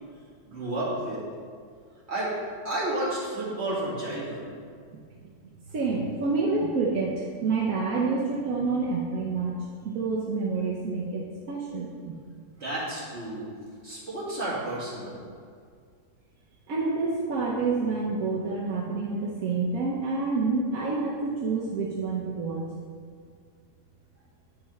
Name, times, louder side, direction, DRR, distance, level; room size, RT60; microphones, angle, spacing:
voice 1, 0.5-1.2 2.1-2.3 2.6-4.4 12.6-13.5 13.8-15.2, right 1 dB, 30° right, -8 dB, 2.4 m, -31 dB
voice 2, 5.7-9.6 9.8-12.2 16.7-22.7, right 4 dB, 60° right, -4 dB, 1.0 m, -28 dB
9.1 x 4.8 x 4.2 m, 2.1 s
omnidirectional pair, 2.1 m